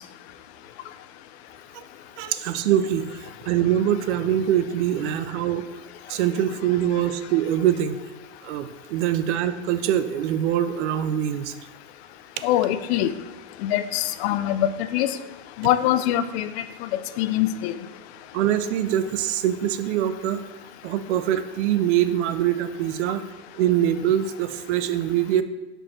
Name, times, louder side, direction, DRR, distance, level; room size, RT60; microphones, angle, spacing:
voice 1, 2.2-5.6 6.1-8.0 8.4-11.5 18.3-20.5 20.8-23.2 23.6-25.4, right 11 dB, 85° right, 11 dB, 0.6 m, -23 dB
voice 2, 12.4-13.1 13.6-15.1 15.6-16.5 16.8-16.9 17.2-17.8, left 12 dB, 65° left, 13 dB, 0.5 m, -23 dB
5.3 x 4.4 x 4.2 m, 1.1 s
supercardioid pair, 140°, 34 cm